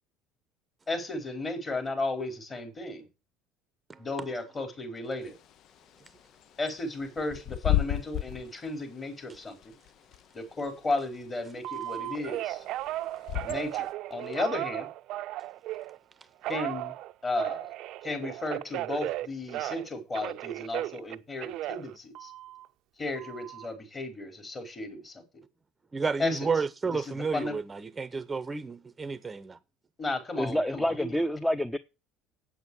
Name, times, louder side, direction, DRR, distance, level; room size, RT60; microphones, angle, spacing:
voice 1, 0.9-3.1 4.0-5.4 6.6-9.6 10.3-12.6 13.4-14.9 16.5-16.9 17.2-17.7 18.0-22.3 23.0-25.2 26.2-26.5 26.9-27.6 30.0-31.1, left 2 dB, 30° left, 5.2 m, -34 dB
Bird / Wind, 5.2-13.9, left 14 dB, 60° left, 0.6 m, -35 dB
Telephone, 11.6-16.0 16.4-19.9 20.1-22.6 23.1-23.7, right 15 dB, 65° right, 0.6 m, -35 dB
voice 2, 25.9-29.6, right 5 dB, 25° right, 0.8 m, -31 dB
voice 3, 30.4-31.8, equal, 5° left, 0.8 m, -28 dB
8.6 x 7.9 x 7.4 m
hypercardioid pair, 75°, 0 cm